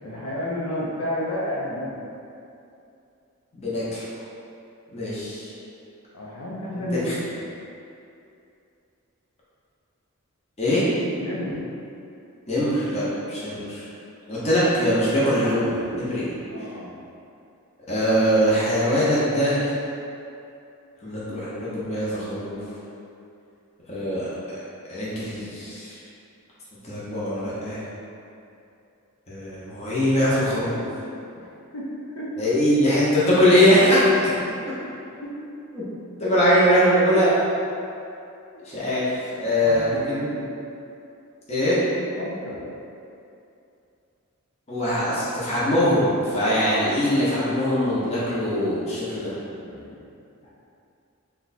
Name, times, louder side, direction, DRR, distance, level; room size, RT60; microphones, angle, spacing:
voice 1, 0.0-2.1 6.1-7.4 11.2-11.7 16.5-16.9 31.4-32.3 34.7-35.4 39.6-40.4 42.2-42.6 49.5-50.0 50.4-50.5, left 1 dB, 80° left, -5 dB, 0.6 m, -32 dB
voice 2, 3.5-4.1 4.9-5.5 6.9-7.1 10.6-10.8 12.5-13.8 14.3-16.3 17.9-19.6 21.0-22.6 23.9-24.2 24.9-26.0 26.8-27.8 29.3-30.8 32.4-34.3 35.7-35.8 36.2-37.3 38.6-40.2 41.5-41.8 44.7-49.3, equal, 30° left, -9 dB, 0.7 m, -22 dB
3.0 x 2.2 x 4.0 m, 2.7 s
head